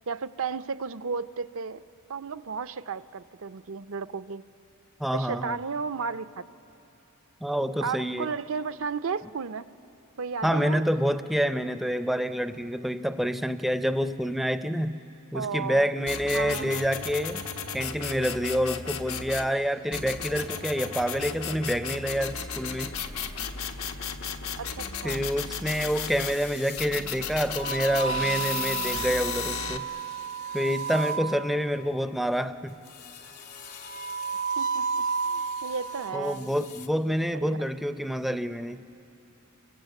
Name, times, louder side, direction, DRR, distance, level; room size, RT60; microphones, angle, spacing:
voice 1, 0.0-1.8 2.1-4.4 5.1-6.4 7.8-9.6 10.2-11.1 15.3-15.9 16.3-16.8 24.6-25.2 34.6-36.6 37.3-37.5, right 5 dB, 65° right, 11 dB, 0.6 m, -34 dB
voice 2, 5.0-5.6 7.4-8.3 10.4-15.0 15.3-17.4 17.7-23.0 25.0-29.9 30.5-32.8 36.1-38.8, equal, ahead, 10 dB, 0.5 m, -27 dB
sound 1, 16.1-19.5 19.9-26.4 26.8-29.8, left 6 dB, 75° left, 1.4 m, -34 dB
sound 2, 25.7-26.8 27.5-31.8 33.0-36.2 36.6-36.9, right 5 dB, 90° left, 1.3 m, -33 dB
29.5 x 23.0 x 8.3 m, 2.8 s
head